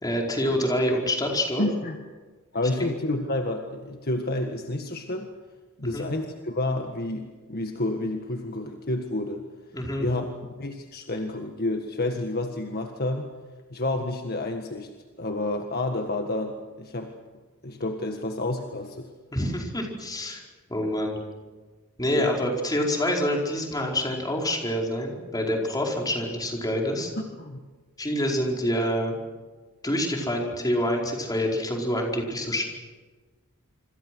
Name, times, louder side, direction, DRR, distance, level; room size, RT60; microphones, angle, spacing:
voice 1, 0.0-1.6 2.8-2.9 5.8-6.1 9.7-10.1 19.3-20.4 20.7-21.2 22.0-27.1 28.0-29.2 29.8-32.6, left 1 dB, 20° left, 0 dB, 4.8 m, -26 dB
voice 2, 1.6-2.0 2.5-5.3 5.8-9.4 10.0-13.3 13.7-14.9 15.2-17.1 17.6-19.1 22.1-22.3 27.2-27.6, left 2 dB, 45° left, 4 dB, 1.7 m, -29 dB
27.0 x 26.0 x 6.3 m, 1.3 s
head